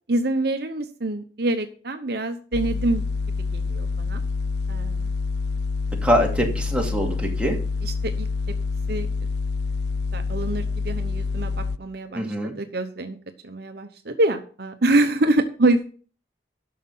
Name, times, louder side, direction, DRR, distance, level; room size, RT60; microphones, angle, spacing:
voice 1, 0.1-3.0 3.5-4.2 4.7-5.1 7.8-8.3 8.9-9.1 10.1-13.2 13.4-15.9, right 2 dB, 60° right, 8 dB, 0.9 m, -25 dB
sound 1, 2.5-11.8, left 4 dB, 60° left, 0.4 m, -27 dB
voice 2, 6.0-7.6 12.1-12.5, equal, 5° right, 0 dB, 2.4 m, -23 dB
11.5 x 6.6 x 5.5 m, 0.41 s
head